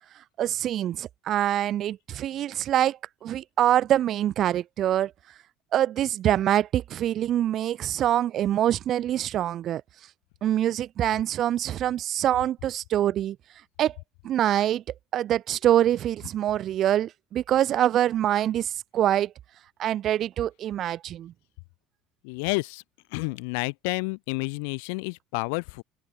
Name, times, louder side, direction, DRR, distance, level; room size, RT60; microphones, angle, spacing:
voice 1, 0.4-5.1 5.7-9.8 10.4-13.4 13.8-14.0 14.2-14.8 15.1-19.3 19.8-21.3, right 11 dB, 45° right, 0.4 m, -25 dB
voice 2, 22.2-22.8 23.1-25.8, left 34 dB, 85° left, 0.9 m, -30 dB
cardioid pair, 145°, 0 cm